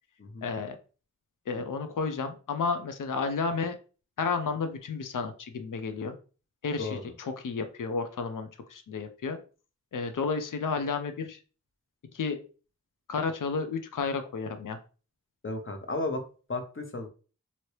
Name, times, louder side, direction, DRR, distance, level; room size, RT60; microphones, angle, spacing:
voice 1, 0.4-0.8 1.5-3.8 4.2-6.1 6.6-9.4 9.9-11.4 12.1-12.4 13.1-14.8, left 4 dB, 85° left, 8 dB, 0.5 m, -32 dB
voice 2, 15.4-16.2 16.5-17.1, left 2 dB, 40° left, 5 dB, 0.7 m, -33 dB
2.8 x 2.7 x 3.1 m, 0.36 s
wide cardioid pair, 60°, 31 cm